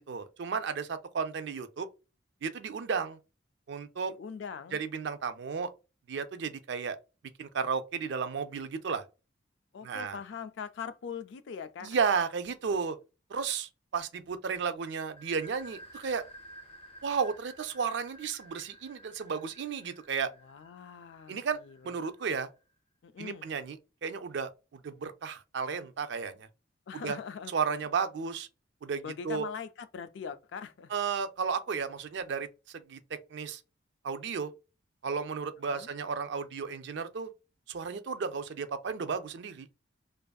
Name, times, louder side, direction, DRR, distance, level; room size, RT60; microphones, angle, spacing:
voice 1, 0.0-1.9 2.4-3.2 3.7-4.1 4.7-5.7 6.1-7.0 7.4-9.0 9.8-10.2 11.8-13.0 13.3-16.2 17.0-20.3 21.3-21.6 21.8-22.5 23.2-24.5 24.8-26.5 26.9-27.2 27.5-28.5 28.8-29.5 30.9-33.0 33.3-33.6 34.0-34.5 35.0-37.3 37.7-39.7, right 6 dB, 60° right, 0.4 m, -33 dB
voice 2, 4.1-4.8 9.7-12.0 20.4-21.9 23.0-23.5 26.9-27.5 29.0-30.9 35.7-35.9, left 6 dB, 65° left, 0.3 m, -42 dB
sound 1, 15.2-22.6, right 1 dB, 30° left, 0.7 m, -53 dB
2.6 x 2.4 x 2.2 m
head